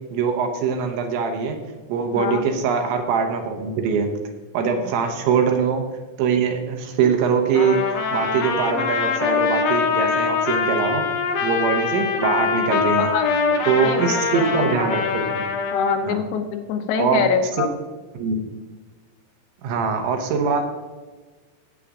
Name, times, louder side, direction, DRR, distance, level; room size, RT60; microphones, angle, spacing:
voice 1, 0.1-1.6 1.9-4.1 4.5-5.8 6.2-7.8 8.1-11.1 11.4-13.1 13.7-15.4 16.0-16.2 17.0-17.2 18.1-18.5 19.6-20.7, right 6 dB, 75° right, 4 dB, 3.2 m, -22 dB
voice 2, 2.2-2.5 4.7-4.8 13.0-13.4 13.7-14.7 15.7-17.7, left 6 dB, 90° left, 5 dB, 3.6 m, -25 dB
Trumpet, 7.5-16.0, left 5 dB, 75° left, 2.0 m, -23 dB
17.0 x 8.3 x 2.5 m, 1.3 s
omnidirectional pair, 5.8 m